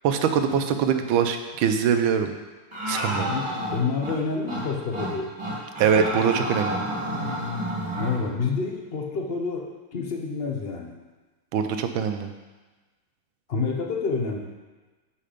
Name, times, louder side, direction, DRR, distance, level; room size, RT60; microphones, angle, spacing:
voice 1, 0.0-2.3 2.9-3.3 5.8-6.8 11.5-12.3, right 7 dB, 80° right, 7 dB, 1.4 m, -23 dB
sound 1, 2.7-4.2 4.5-4.6 4.9-5.1 5.4-8.2, equal, 15° right, 1.9 m, -30 dB
voice 2, 3.1-5.3 8.0-10.9 13.5-14.4, left 4 dB, 75° left, 1 dB, 0.5 m, -28 dB
7.5 x 5.7 x 5.0 m, 1.2 s
omnidirectional pair, 2.2 m